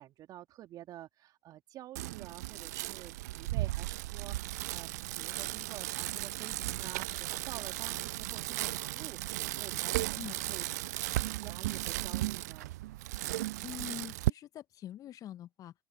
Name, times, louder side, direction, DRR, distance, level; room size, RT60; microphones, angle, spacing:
voice 1, 0.0-10.7 11.4-12.8, right 13 dB, 40° right, 3.6 m, -49 dB
Bicycle, 2.0-14.3, right 18 dB, 60° right, 0.4 m, -35 dB
voice 2, 13.6-15.7, left 11 dB, 35° left, 1.7 m, -44 dB
figure-of-eight pair, 80°, 10 cm